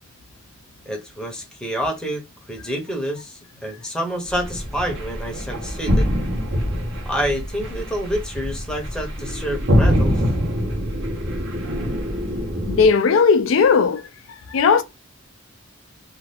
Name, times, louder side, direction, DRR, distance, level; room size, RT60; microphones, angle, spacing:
voice 1, 0.9-6.1 7.1-10.2, equal, 5° left, 0.7 m, -28 dB
sound 1, 4.3-12.9, equal, 65° right, 1.0 m, -24 dB
voice 2, 12.7-14.1 14.5-14.8, left 5 dB, 75° left, 0.4 m, -16 dB
2.6 x 2.4 x 3.2 m
head